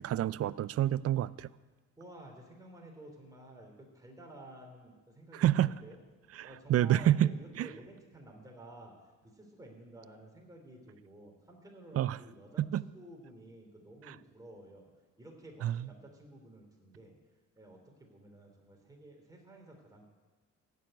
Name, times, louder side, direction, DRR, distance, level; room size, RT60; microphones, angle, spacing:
voice 1, 0.0-1.5 5.3-5.7 6.4-7.3 7.6-7.7 12.0-12.2 12.6-12.8 15.6-15.8, right 12 dB, 50° right, 19 dB, 0.5 m, -28 dB
voice 2, 2.0-6.0 6.4-14.9 15.2-17.2 17.6-20.1, right 1 dB, 10° right, 0 dB, 3.5 m, -52 dB
15.5 x 6.9 x 9.2 m, 1.3 s
cardioid pair, 90°, 30 cm